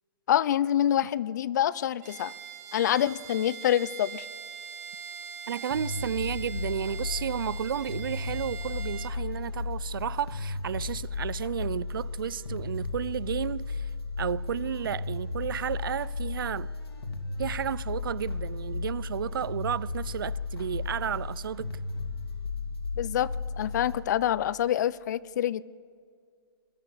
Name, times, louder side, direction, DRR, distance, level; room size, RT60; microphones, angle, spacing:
voice 1, 0.3-2.3 2.7-4.3 23.0-25.6, left 11 dB, 50° left, 0.6 m, -26 dB
Bowed string instrument, 2.0-9.2, right 7 dB, 40° right, 1.9 m, -42 dB
voice 2, 5.5-13.9 14.2-16.7 17.4-21.7, right 9 dB, 60° right, 0.6 m, -32 dB
sound 1, 5.7-24.0, left 4 dB, 80° left, 3.1 m, -35 dB
21.0 x 21.0 x 6.7 m
hypercardioid pair, 145°, 13 cm